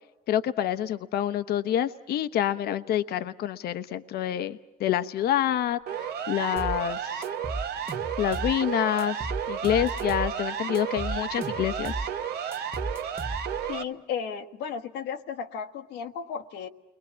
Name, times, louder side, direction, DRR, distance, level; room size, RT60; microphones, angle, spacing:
voice 1, 0.3-5.8 6.3-7.2 8.2-11.9, left 11 dB, 70° left, 11 dB, 1.0 m, -27 dB
Siren, 5.9-13.8, right 8 dB, 75° right, 1.3 m, -32 dB
sound 1, 6.6-6.8 7.2-8.6 9.0-10.3 10.7-12.1 12.5-13.7, right 2 dB, 15° right, 1.7 m, -35 dB
voice 2, 13.7-16.7, left 7 dB, 85° left, 7 dB, 1.4 m, -34 dB
29.5 x 22.0 x 7.5 m, 1.0 s
cardioid pair, 110°, 17 cm